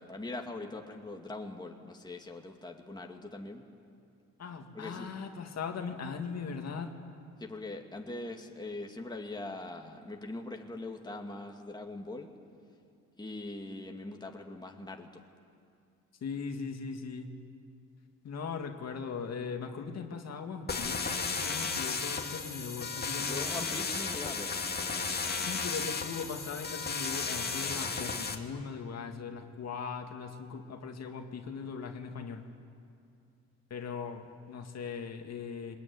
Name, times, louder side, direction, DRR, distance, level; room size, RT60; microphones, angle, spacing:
voice 1, 0.0-3.6 4.7-5.1 7.4-12.3 13.2-15.2 23.3-24.7, left 2 dB, 15° left, 2 dB, 2.3 m, -42 dB
voice 2, 4.4-6.9 16.2-17.3 18.2-23.5 24.2-24.3 25.3-32.4 33.7-35.8, left 5 dB, 60° left, 4 dB, 2.3 m, -39 dB
sound 1, 20.7-28.3, left 4 dB, 30° left, 2.2 m, -34 dB
23.0 x 20.5 x 9.7 m, 2.4 s
cardioid pair, 90°, 30 cm